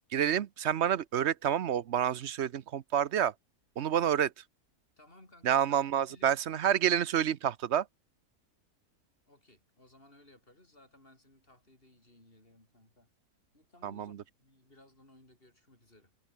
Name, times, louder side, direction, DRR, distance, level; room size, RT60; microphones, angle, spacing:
voice 1, 0.1-3.3 3.8-4.3 5.4-7.8 13.8-14.1, right 9 dB, 55° right, 0.9 m, -28 dB
voice 2, 3.8-4.2 5.0-6.3 9.3-13.1 13.5-16.1, left 1 dB, 35° left, 6.9 m, -60 dB
omnidirectional pair, 1.6 m